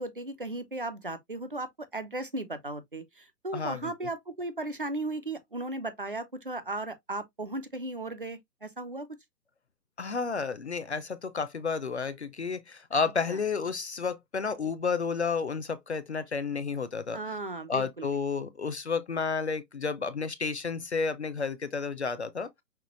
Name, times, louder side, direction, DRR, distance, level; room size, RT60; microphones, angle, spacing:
voice 1, 0.0-9.1 13.3-13.4 17.1-18.1 18.4-18.5, right 2 dB, 35° right, 0.4 m, -36 dB
voice 2, 3.5-3.9 10.0-17.2 17.7-22.5, left 5 dB, 45° left, 0.5 m, -31 dB
5.9 x 2.8 x 2.9 m
hypercardioid pair, 170°, 48 cm